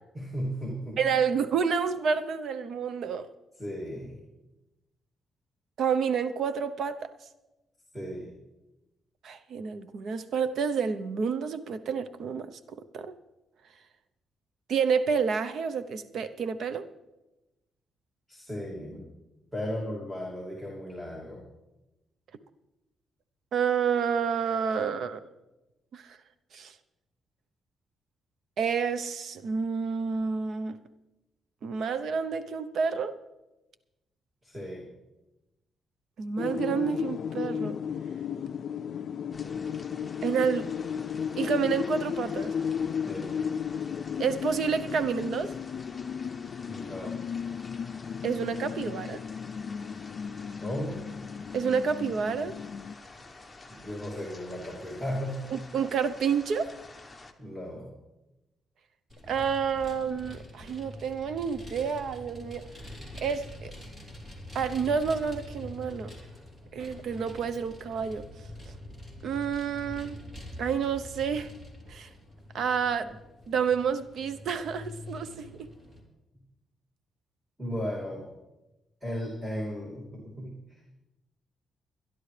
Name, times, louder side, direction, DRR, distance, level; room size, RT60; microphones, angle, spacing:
voice 1, 0.1-1.0 3.6-4.2 7.9-8.3 18.3-19.1 19.5-21.4 34.4-34.9 43.1-43.4 46.7-47.2 50.6-51.0 53.7-55.5 57.4-57.9 77.6-78.3 79.0-80.8, equal, 10° right, 2.7 m, -35 dB
voice 2, 1.0-3.3 5.8-7.1 9.2-12.6 12.9-13.1 14.7-16.9 23.5-25.2 25.9-26.2 26.5-26.7 28.6-30.8 31.6-33.2 36.2-37.8 40.2-40.7 41.3-42.5 44.2-45.5 48.2-49.2 51.5-52.6 55.5-56.7 59.3-62.7 63.2-63.7 64.5-66.1 66.7-68.2 69.2-70.2 70.6-71.5 71.9-72.1 72.5-73.2 73.5-75.6, right 6 dB, 65° right, 0.8 m, -29 dB
sound 1, 36.4-52.9, left 7 dB, 55° left, 0.4 m, -34 dB
sound 2, 39.3-57.3, left 2 dB, 10° left, 1.1 m, -49 dB
Vehicle, 59.1-76.0, left 1 dB, 25° right, 3.1 m, -45 dB
23.5 x 11.0 x 3.3 m
cardioid pair, 125°, 0 cm